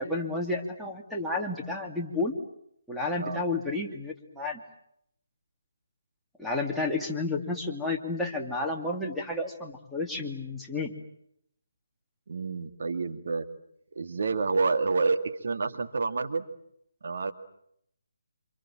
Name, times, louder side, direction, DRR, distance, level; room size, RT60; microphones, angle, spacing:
voice 1, 0.0-2.3 2.9-4.6 6.4-10.9, left 2 dB, ahead, -3 dB, 2.8 m, -31 dB
voice 2, 12.3-13.5 13.9-16.5 17.0-17.3, right 4 dB, 60° right, 7 dB, 2.4 m, -28 dB
28.5 x 27.5 x 7.6 m, 0.73 s
figure-of-eight pair, 150°, 0 cm